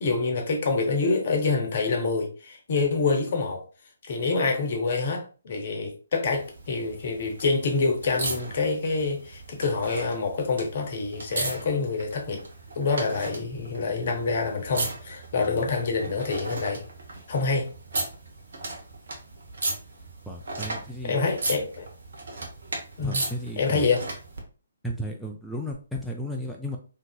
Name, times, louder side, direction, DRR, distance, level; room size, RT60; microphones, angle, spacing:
voice 1, 0.0-3.6 4.1-12.4 12.8-16.8 17.3-17.7 21.0-21.9 23.0-23.2 23.6-24.0, left 4 dB, 45° left, 0.8 m, -26 dB
sound 1, 6.2-24.4 25.7-25.8, right 2 dB, 60° right, 0.8 m, -36 dB
voice 2, 20.3-21.2 23.0-23.8 24.8-26.8, equal, ahead, 0.3 m, -34 dB
3.7 x 2.7 x 2.2 m
figure-of-eight pair, 135°, 0 cm